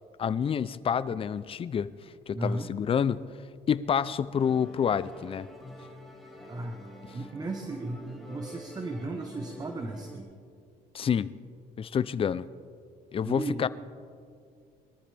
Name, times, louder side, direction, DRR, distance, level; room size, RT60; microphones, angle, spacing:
voice 1, 0.2-1.9 2.3-3.3 3.7-5.5 10.9-11.3 11.8-12.5 13.1-13.7, left 7 dB, 35° left, 16 dB, 0.5 m, -28 dB
voice 2, 2.3-2.7 6.5-6.8 7.1-10.3 13.2-13.7, right 2 dB, 25° right, 5 dB, 1.0 m, -35 dB
Musical instrument, 4.3-10.2, equal, ahead, 2.3 m, -47 dB
22.5 x 14.0 x 3.4 m, 2.3 s
cardioid pair, 110°, 17 cm